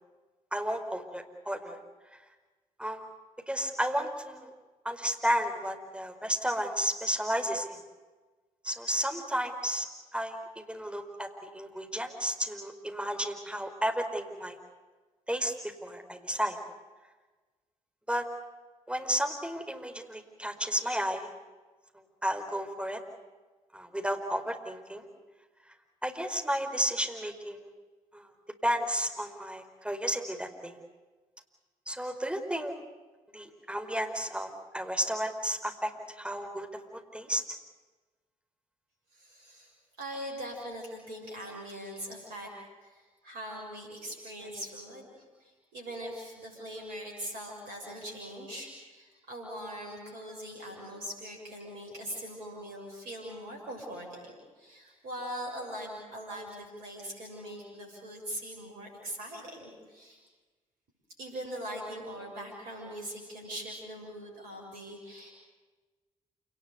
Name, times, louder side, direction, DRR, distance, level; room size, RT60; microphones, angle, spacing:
voice 1, 0.5-1.8 2.8-3.0 3.5-4.5 4.8-7.8 8.6-9.9 10.1-14.6 15.3-16.6 18.1-18.2 18.9-21.3 22.2-23.0 23.7-25.0 26.0-27.7 28.1-28.3 28.6-30.8 31.9-32.7 33.3-34.5 34.7-35.9 36.2-37.4, equal, 5° right, 5 dB, 4.9 m, -32 dB
voice 2, 39.1-39.7 40.0-42.5 42.8-60.2 61.2-65.3, equal, 70° right, -1 dB, 6.9 m, -41 dB
28.0 x 19.5 x 8.4 m, 1.3 s
figure-of-eight pair, 40°, 17 cm